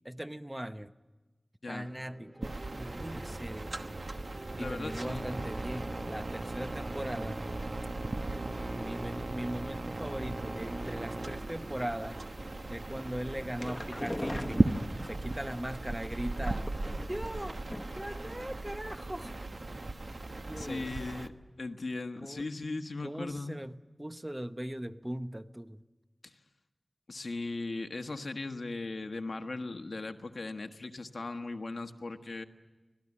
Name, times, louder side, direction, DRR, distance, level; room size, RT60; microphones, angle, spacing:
voice 1, 0.0-0.9 1.7-4.0 4.6-7.5 8.7-12.3 12.7-14.8 15.0-16.7 17.1-17.6 17.9-19.4 20.5-20.9 22.2-22.5 23.0-25.8, right 1 dB, 15° right, 0.9 m, -39 dB
sound 1, 1.7-15.6, right 1 dB, 45° right, 3.1 m, -47 dB
sound 2, 2.4-21.3, right 2 dB, 60° right, 1.2 m, -37 dB
voice 2, 4.6-5.3 20.6-21.3 21.6-23.6 26.2-26.4 27.1-32.4, left 3 dB, 80° left, 1.3 m, -38 dB
sound 3, 13.3-15.4 16.4-17.3 17.7-18.1 18.4-18.5 18.8-18.9, left 1 dB, 25° left, 0.9 m, -40 dB
25.0 x 18.5 x 9.8 m
wide cardioid pair, 60°, 0 cm